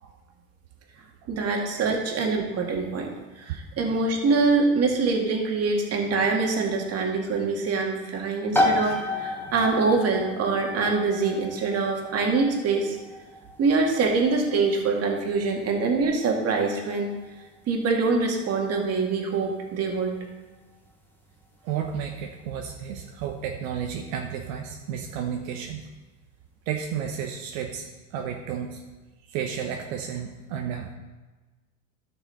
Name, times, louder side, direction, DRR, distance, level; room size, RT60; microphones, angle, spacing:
voice 1, 1.3-13.0 13.6-17.1 17.7-20.2, right 4 dB, 35° right, 1 dB, 2.1 m, -24 dB
sound 1, 8.5-23.0, left 1 dB, 5° left, 1.2 m, -33 dB
voice 2, 21.6-25.9 26.7-27.9 28.1-28.8 29.3-30.9, right 8 dB, 70° right, 2 dB, 1.1 m, -32 dB
13.0 x 6.0 x 4.1 m, 1.2 s
supercardioid pair, 115°, 42 cm